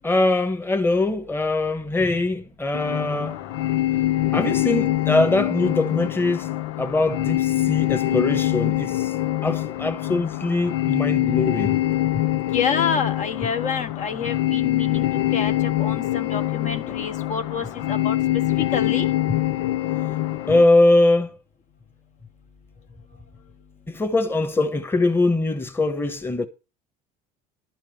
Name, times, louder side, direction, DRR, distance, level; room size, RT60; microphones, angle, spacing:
voice 1, 0.0-3.4 4.3-6.5 6.8-9.1 9.4-11.8 20.5-21.4 23.9-26.5, left 2 dB, 10° left, 1.3 m, -22 dB
sound 1, 2.7-20.6, left 15 dB, 80° left, 0.7 m, -24 dB
voice 2, 12.5-15.0 15.3-18.2 18.6-19.1, left 6 dB, 45° left, 1.3 m, -28 dB
11.5 x 5.0 x 7.8 m
supercardioid pair, 110°, 18 cm